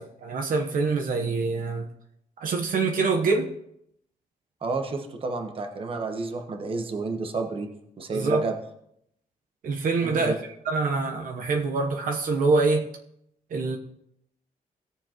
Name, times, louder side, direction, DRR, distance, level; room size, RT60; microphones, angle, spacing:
voice 1, 0.0-1.9 2.4-3.5 8.1-8.4 9.6-10.3 10.7-12.9 13.5-13.8, right 3 dB, 70° right, 3 dB, 1.0 m, -25 dB
voice 2, 4.6-7.7 8.0-8.6 10.0-10.3, right 3 dB, 40° right, 4 dB, 1.1 m, -30 dB
17.5 x 7.0 x 3.0 m, 0.76 s
wide cardioid pair, 165°, 15 cm